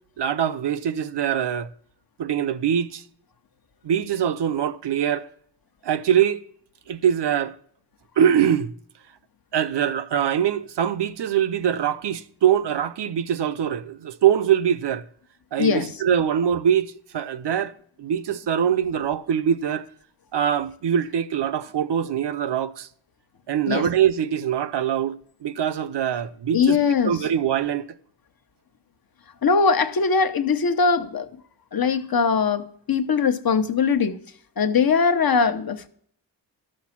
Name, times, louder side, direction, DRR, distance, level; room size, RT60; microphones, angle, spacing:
voice 1, 0.2-1.7 2.2-3.0 3.8-5.3 5.8-6.4 6.9-7.5 8.2-8.7 9.5-15.0 15.5-17.7 18.0-19.9 20.3-22.9 23.5-26.8 27.0-27.9, right 9 dB, 65° right, 0.7 m, -23 dB
voice 2, 15.6-15.9 23.7-23.9 26.5-27.2 29.4-31.3 31.7-34.2 34.6-35.9, left 5 dB, 50° left, 1.0 m, -21 dB
12.5 x 6.5 x 5.8 m
wide cardioid pair, 100°, 45 cm